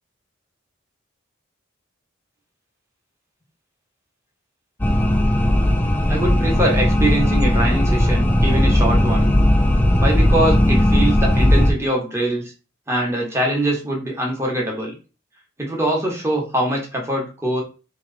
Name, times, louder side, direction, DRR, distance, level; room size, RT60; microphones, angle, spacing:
sound 1, 4.8-11.7, left 1 dB, 10° left, 0.4 m, -17 dB
voice 1, 6.1-9.3 10.0-12.4 12.9-14.9 15.6-17.6, right 1 dB, 15° right, -2 dB, 1.0 m, -23 dB
3.0 x 3.0 x 3.8 m, 0.33 s
head